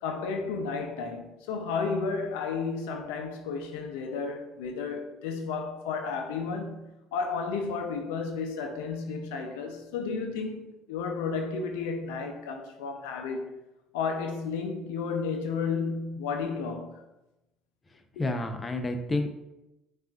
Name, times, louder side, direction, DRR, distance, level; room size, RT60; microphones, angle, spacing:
voice 1, 0.0-13.5 13.9-16.9 18.1-18.2, left 5 dB, 85° left, 0.4 m, -32 dB
voice 2, 17.9-19.3, left 2 dB, 25° left, 0.6 m, -30 dB
7.3 x 2.4 x 2.3 m
supercardioid pair, 75°, 0 cm